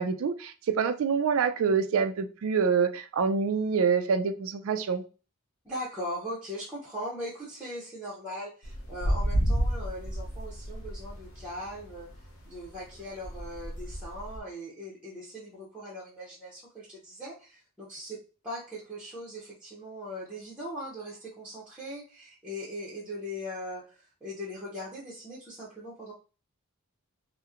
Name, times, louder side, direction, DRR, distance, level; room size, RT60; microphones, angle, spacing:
voice 1, 0.0-5.0, right 6 dB, 65° right, 0.3 m, -26 dB
voice 2, 5.6-12.1 12.5-18.2 18.4-26.1, equal, 5° right, 0.6 m, -40 dB
sound 1, 8.6-14.4, equal, 65° left, 0.6 m, -31 dB
2.9 x 2.0 x 2.4 m
head